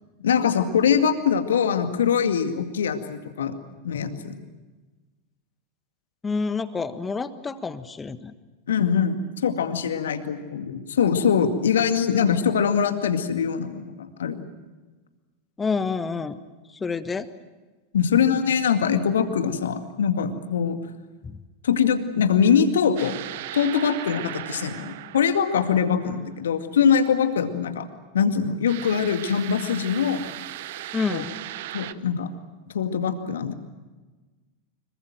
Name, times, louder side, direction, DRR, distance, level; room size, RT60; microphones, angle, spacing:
voice 1, 0.2-3.5 3.8-4.4 8.7-14.5 17.9-20.8 21.6-23.2 23.5-27.9 28.1-30.3 31.1-31.2 31.7-32.3 32.7-33.5, left 7 dB, 70° left, 8 dB, 2.2 m, -23 dB
voice 2, 6.2-8.3 15.6-16.4 16.7-17.3 21.2-21.4 30.9-31.3, left 4 dB, 15° left, 12 dB, 1.4 m, -28 dB
sound 1, 23.0-26.4 28.7-31.9, right 14 dB, 55° right, 0.9 m, -37 dB
26.0 x 23.5 x 7.7 m, 1.2 s
figure-of-eight pair, 90°, 0 cm